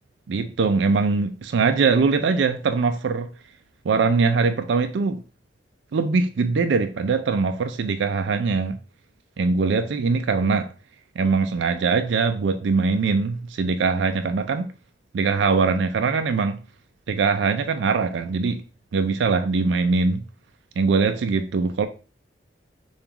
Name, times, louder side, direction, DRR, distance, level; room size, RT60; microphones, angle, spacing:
voice 1, 0.3-3.3 3.8-5.2 5.9-8.8 9.4-10.7 11.2-14.7 15.1-16.6 17.1-18.6 18.9-20.2 20.8-21.9, right 4 dB, 85° right, 0.4 m, -22 dB
7.0 x 2.4 x 2.9 m
head